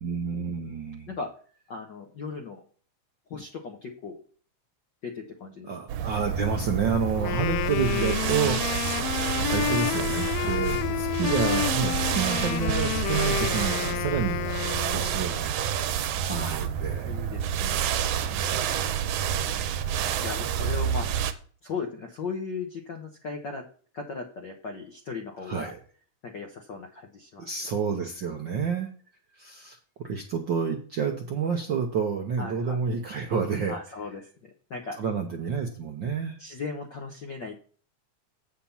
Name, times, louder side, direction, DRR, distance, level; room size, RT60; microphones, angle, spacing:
voice 1, 0.0-1.1 5.7-14.5 14.9-15.7 16.0-17.1 18.5-19.5 25.5-25.8 27.4-28.9 29.3-33.8 35.0-36.4, right 6 dB, 65° right, 2 dB, 1.2 m, -30 dB
voice 2, 1.7-2.6 3.3-4.2 5.0-5.7 7.1-7.3 10.4-11.0 16.3-16.7 17.0-17.8 19.9-21.2 21.6-23.6 23.9-25.7 26.2-27.5 32.4-32.8 33.7-35.0 36.4-37.6, left 4 dB, 65° left, 3 dB, 1.1 m, -37 dB
sound 1, 5.9-21.3, right 9 dB, 85° right, 2.2 m, -29 dB
Wind instrument woodwind instrument, 7.1-15.3, left 15 dB, 90° left, 1.4 m, -30 dB
8.4 x 5.9 x 5.6 m, 0.43 s
omnidirectional pair, 3.4 m